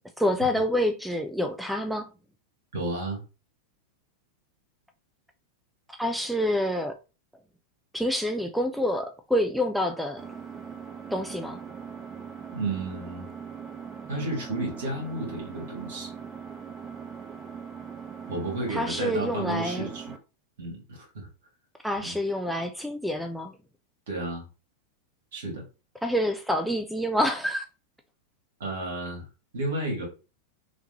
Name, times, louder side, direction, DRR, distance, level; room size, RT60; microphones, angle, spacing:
voice 1, 0.2-2.1 5.9-7.0 7.9-10.2 11.1-11.6 18.7-19.9 21.8-23.6 26.0-27.7, equal, ahead, 0.3 m, -27 dB
voice 2, 2.7-3.2 12.5-13.2 14.1-16.1 18.3-20.1 20.6-21.3 22.0-22.1 24.1-24.4 25.3-25.7 28.6-29.2 29.5-30.1, right 2 dB, 60° right, 1.9 m, -32 dB
Engine, 10.2-20.2, right 6 dB, 20° right, 0.8 m, -41 dB
3.4 x 3.1 x 2.8 m
figure-of-eight pair, 90°, 0 cm